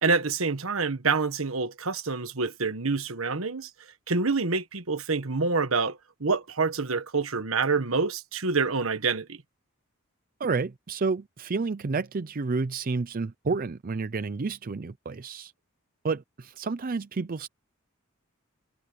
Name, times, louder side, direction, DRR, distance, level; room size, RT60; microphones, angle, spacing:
voice 1, 0.0-3.7 4.1-9.4, right 4 dB, 75° right, 1.4 m, -27 dB
voice 2, 10.4-15.5 16.0-17.5, right 4 dB, 45° right, 0.5 m, -30 dB
head